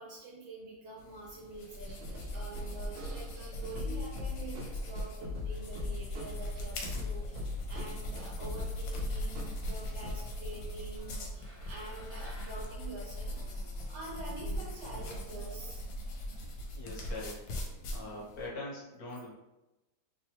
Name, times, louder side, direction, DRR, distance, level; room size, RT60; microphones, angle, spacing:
voice 1, 0.0-13.5 13.8-15.8 16.2-16.4, right 2 dB, 75° right, -4 dB, 1.3 m, -46 dB
sound 1, 1.0-18.5, equal, 80° left, 1.3 m, -40 dB
sound 2, 1.8-10.3 10.6-10.7 11.0-12.9 13.2-15.7, left 3 dB, 55° right, 1.0 m, -43 dB
sound 3, 11.4-14.0, left 1 dB, 10° right, 0.7 m, -55 dB
voice 2, 16.7-17.4 17.9-19.3, left 2 dB, 60° left, -5 dB, 1.2 m, -42 dB
3.2 x 2.2 x 2.9 m, 0.98 s
omnidirectional pair, 2.0 m